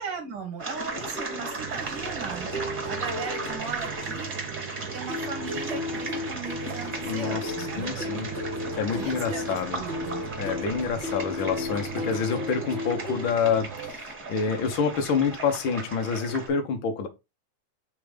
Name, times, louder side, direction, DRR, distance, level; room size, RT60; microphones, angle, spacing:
voice 1, 0.0-2.5 2.8-4.3 4.9-7.9 9.0-10.2, right 5 dB, 50° right, 1.9 m, -37 dB
sound 1, 0.6-16.5, right 2 dB, 20° right, 1.8 m, -36 dB
sound 2, 1.2-4.8 5.1-13.3, left 3 dB, 30° left, 1.3 m, -36 dB
sound 3, 1.6-13.9, right 10 dB, 80° right, 2.0 m, -40 dB
voice 2, 7.0-8.3 8.8-9.8 10.4-17.1, left 6 dB, 80° left, 1.1 m, -27 dB
5.1 x 3.7 x 5.0 m
omnidirectional pair, 4.0 m